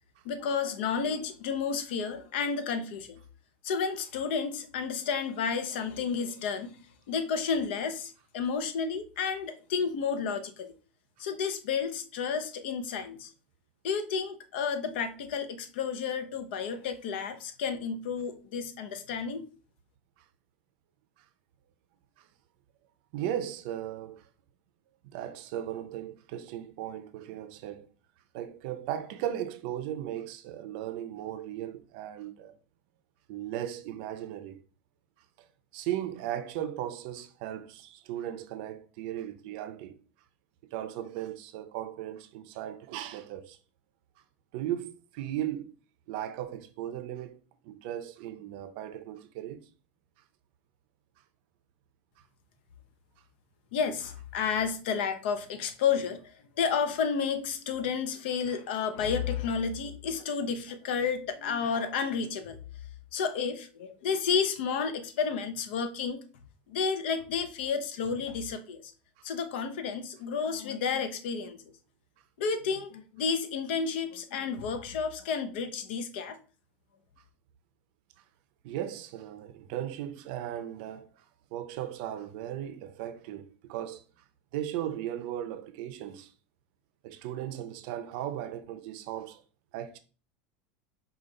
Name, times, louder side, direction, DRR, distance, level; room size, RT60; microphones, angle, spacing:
voice 1, 0.2-3.2 3.6-6.8 7.1-10.7 11.2-13.3 13.8-19.4 53.7-62.6 63.1-66.2 66.7-68.9 69.2-71.6 72.4-76.4, left 6 dB, 75° left, 0.7 m, -31 dB
voice 2, 23.1-24.3 25.1-27.9 28.3-32.6 33.3-34.6 35.4-35.5 35.7-39.9 40.7-43.6 44.5-45.7 46.1-47.4 47.6-49.7 78.6-81.3 81.5-84.0 84.5-86.3 87.0-89.4 89.7-90.0, right 11 dB, 60° right, 0.6 m, -37 dB
5.0 x 2.4 x 3.9 m
supercardioid pair, 160°, 6 cm